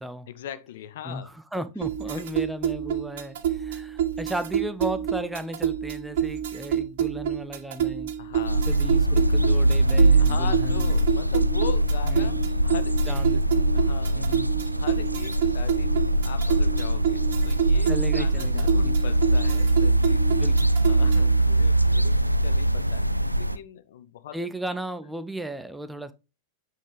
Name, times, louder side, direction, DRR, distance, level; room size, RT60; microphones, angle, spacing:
voice 1, 0.3-1.3 2.1-2.2 8.2-9.1 10.2-13.2 13.7-20.3 20.9-24.4, left 10 dB, 55° left, 0.6 m, -40 dB
voice 2, 1.0-8.1 8.7-10.9 12.1-12.4 13.1-13.6 14.2-14.5 17.9-18.9 20.3-20.7 24.3-26.1, right 1 dB, 5° right, 0.5 m, -35 dB
sound 1, 1.8-21.4, right 9 dB, 55° right, 0.8 m, -28 dB
sound 2, 8.5-23.6, right 1 dB, 85° right, 0.3 m, -22 dB
8.3 x 3.8 x 3.2 m
figure-of-eight pair, 90°, 0 cm